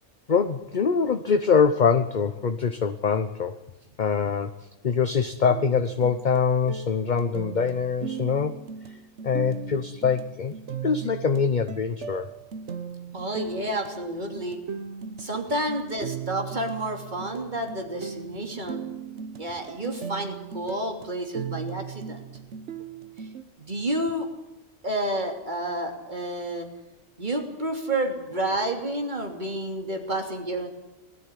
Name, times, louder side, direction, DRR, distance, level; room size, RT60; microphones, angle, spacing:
voice 1, 0.3-3.6 4.0-4.5 4.8-8.6 8.9-9.0 9.2-10.6 10.8-12.3, left 6 dB, 40° left, 9 dB, 0.9 m, -24 dB
sound 1, 5.5-23.4, right 7 dB, 65° right, 1.3 m, -38 dB
voice 2, 13.1-14.6 15.2-18.8 19.4-22.3 23.6-24.3 24.8-26.7 27.2-30.7, right 1 dB, 35° right, 3 dB, 3.3 m, -30 dB
20.0 x 13.5 x 10.0 m, 0.99 s
omnidirectional pair, 1.3 m